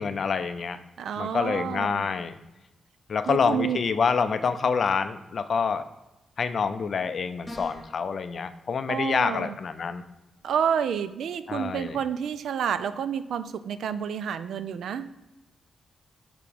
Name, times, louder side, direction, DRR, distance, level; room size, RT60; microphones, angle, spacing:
voice 1, 0.0-0.8 1.2-2.3 3.1-5.8 6.4-10.0 11.5-12.0, left 5 dB, 45° left, 11 dB, 0.4 m, -27 dB
voice 2, 1.0-2.1 3.3-3.8 8.9-9.6 10.4-15.1, right 8 dB, 80° right, 12 dB, 0.4 m, -29 dB
sound 1, 7.5-8.0, left 1 dB, 10° left, 1.4 m, -40 dB
5.9 x 4.8 x 5.2 m, 1.0 s
wide cardioid pair, 165°, 0 cm